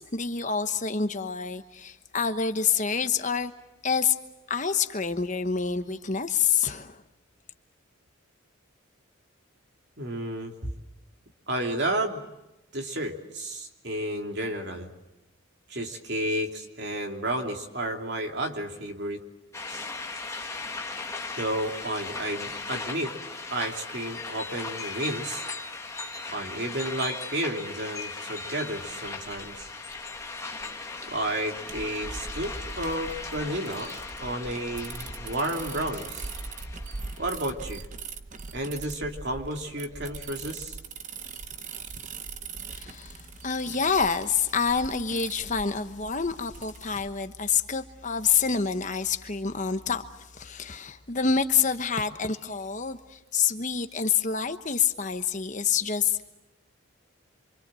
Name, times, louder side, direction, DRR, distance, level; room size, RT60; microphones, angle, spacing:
voice 1, 0.0-3.5 3.8-4.2 4.5-7.0 42.7-50.0 50.3-56.2, left 6 dB, 35° left, 8 dB, 1.1 m, -27 dB
voice 2, 10.0-10.7 11.5-12.2 12.7-14.9 15.7-19.2 19.7-19.9 21.4-23.1 23.5-25.4 26.3-29.7 31.0-36.3 37.2-37.8 38.5-40.8, right 1 dB, 50° right, 2 dB, 3.0 m, -32 dB
sound 1, 19.5-37.5, left 3 dB, 15° left, 1.4 m, -38 dB
sound 2, 28.9-47.1, right 4 dB, 35° right, 0.9 m, -41 dB
27.5 x 25.5 x 7.7 m, 0.98 s
head